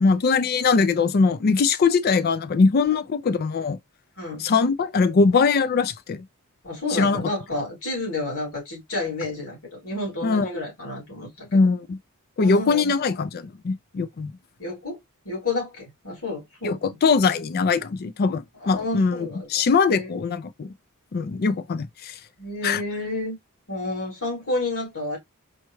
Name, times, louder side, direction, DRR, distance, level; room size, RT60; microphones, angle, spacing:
voice 1, 0.0-3.8 4.4-6.2 6.9-7.2 10.2-10.5 11.5-12.0 12.4-14.3 16.6-16.8 17.0-20.7 21.1-22.1 22.6-22.8, left 4 dB, 45° left, 0.4 m, -21 dB
voice 2, 4.2-4.5 6.6-11.6 12.4-12.9 14.6-15.0 15.2-17.0 18.6-20.1 22.4-23.3 23.7-25.2, left 2 dB, 70° left, 2.8 m, -30 dB
4.3 x 2.2 x 3.1 m
head